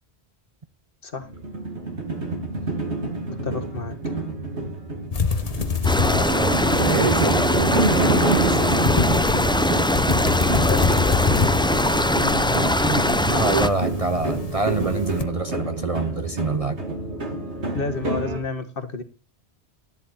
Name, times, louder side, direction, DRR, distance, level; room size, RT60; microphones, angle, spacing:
sound 1, 1.2-18.4, right 2 dB, 85° right, 3.0 m, -28 dB
voice 1, 3.4-4.0 10.5-11.6 17.7-19.0, left 4 dB, 55° left, 1.7 m, -30 dB
sound 2, 5.1-15.2, left 5 dB, 35° left, 1.0 m, -27 dB
sound 3, 5.8-13.7, left 1 dB, 5° left, 0.4 m, -21 dB
voice 2, 6.0-8.8 12.5-16.8, right 3 dB, 35° right, 0.7 m, -26 dB
12.5 x 10.5 x 4.3 m
omnidirectional pair, 1.1 m